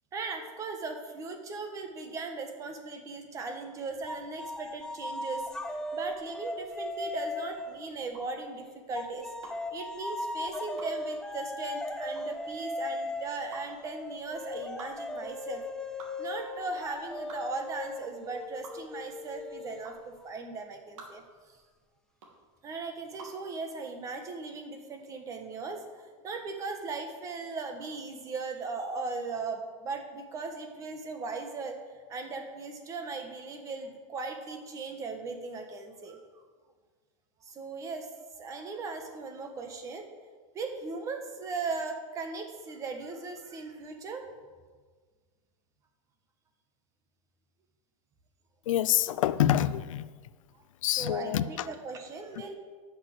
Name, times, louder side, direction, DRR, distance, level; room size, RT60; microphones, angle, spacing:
voice 1, 0.1-9.3 9.7-15.6 16.2-21.6 22.6-31.8 32.1-36.4 37.4-38.1 38.4-40.1 40.5-44.2 51.0-52.5, right 3 dB, 20° right, 5 dB, 1.3 m, -38 dB
sound 1, 4.1-8.4 8.9-20.3, left 2 dB, 5° left, 0.3 m, -38 dB
sound 2, 6.2-23.5, right 3 dB, 70° right, 2.8 m, -51 dB
voice 2, 48.7-50.0 50.8-51.7, left 12 dB, 80° left, 15 dB, 0.6 m, -26 dB
11.0 x 6.5 x 7.8 m, 1.5 s
supercardioid pair, 160°, 17 cm